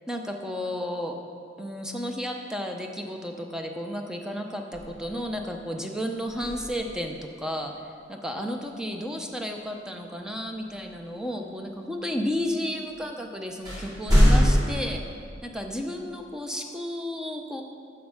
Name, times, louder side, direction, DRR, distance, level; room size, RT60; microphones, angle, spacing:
voice 1, 0.1-1.2 1.6-7.7 8.1-15.0 15.4-17.6, equal, 5° right, 3 dB, 0.7 m, -32 dB
sound 1, 4.7-5.5 6.3-7.2 10.7-10.8 12.9-13.0 13.6-14.8, equal, 20° right, 2.5 m, -23 dB
7.8 x 7.3 x 6.4 m, 2.3 s
head